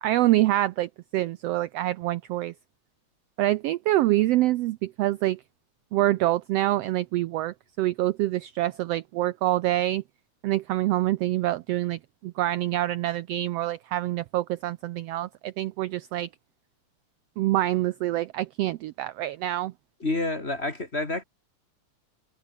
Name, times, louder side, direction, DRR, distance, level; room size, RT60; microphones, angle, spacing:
voice 1, 0.0-2.5 3.4-5.4 5.9-10.0 10.4-16.3 17.4-19.7, right 15 dB, 85° right, 1.4 m, -26 dB
voice 2, 20.0-21.2, left 2 dB, 25° left, 2.2 m, -28 dB
omnidirectional pair, 3.5 m